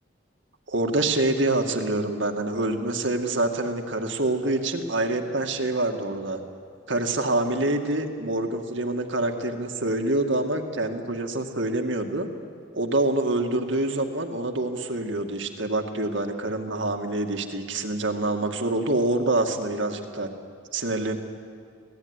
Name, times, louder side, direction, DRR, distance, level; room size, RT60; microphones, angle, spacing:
voice 1, 0.7-6.4 6.9-12.3 12.8-20.3 20.7-21.2, right 2 dB, 65° right, 5 dB, 2.1 m, -26 dB
26.0 x 18.5 x 9.8 m, 2.2 s
head